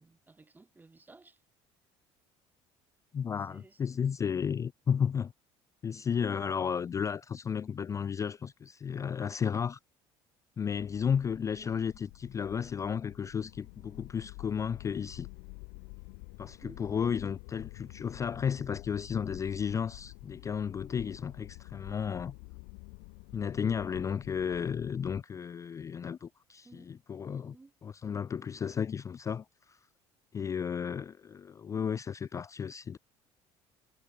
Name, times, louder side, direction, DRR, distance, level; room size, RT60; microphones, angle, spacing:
voice 1, 0.0-1.4 3.4-4.0 16.4-16.9 26.6-26.9 27.3-27.7, right 3 dB, 15° right, 1.0 m, -56 dB
voice 2, 3.1-5.3 5.8-9.8 10.6-15.3 16.4-22.3 23.3-27.5 27.8-29.8 30.3-33.0, left 7 dB, 25° left, 0.3 m, -33 dB
sound 1, 10.8-25.2, left 40 dB or more, 85° left, 0.6 m, -49 dB
supercardioid pair, 95°, 12 cm